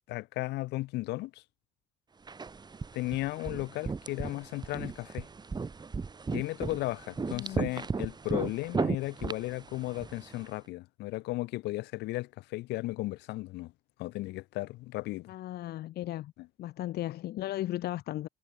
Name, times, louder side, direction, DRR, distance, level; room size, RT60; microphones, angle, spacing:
voice 1, 0.1-1.4 2.9-5.3 6.3-13.7 14.0-15.3, left 19 dB, 85° left, 3.8 m, -35 dB
sound 1, 2.3-10.5, right 4 dB, 25° right, 2.9 m, -36 dB
voice 2, 7.2-7.6 15.3-16.3 16.6-18.3, left 14 dB, 70° left, 2.1 m, -36 dB
cardioid pair, 110°, 17 cm